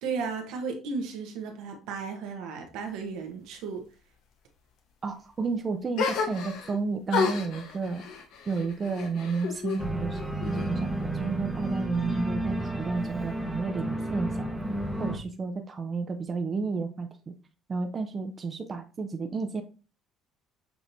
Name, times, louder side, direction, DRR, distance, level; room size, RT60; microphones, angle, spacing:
voice 1, 0.0-3.8, right 5 dB, 80° right, 1.0 m, -34 dB
voice 2, 5.0-8.0 8.5-14.5 15.0-17.3 17.7-19.6, right 4 dB, 35° right, 0.6 m, -32 dB
sound 1, 6.0-6.8 7.1-9.8 10.1-11.0, left 5 dB, 70° left, 0.9 m, -31 dB
Organ, 9.8-15.2, right 1 dB, 10° right, 0.9 m, -32 dB
7.0 x 2.9 x 2.6 m
supercardioid pair, 80°, 0 cm